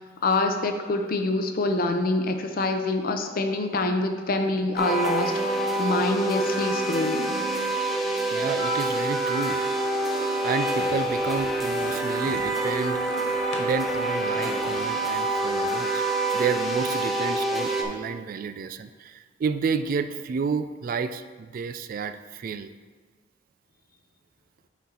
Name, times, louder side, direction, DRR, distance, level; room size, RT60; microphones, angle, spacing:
voice 1, 0.2-7.4, left 2 dB, 50° left, 6 dB, 0.6 m, -26 dB
sound 1, 4.8-17.8, right 2 dB, ahead, 0.7 m, -26 dB
voice 2, 8.3-9.6 10.4-13.0 13.6-16.0 16.3-22.7, right 5 dB, 50° right, 11 dB, 0.3 m, -30 dB
sound 2, 8.3-11.9, equal, 70° right, 0.9 m, -37 dB
sound 3, 10.7-15.7, left 2 dB, 80° left, 0.8 m, -42 dB
8.4 x 4.4 x 3.8 m, 1.4 s
head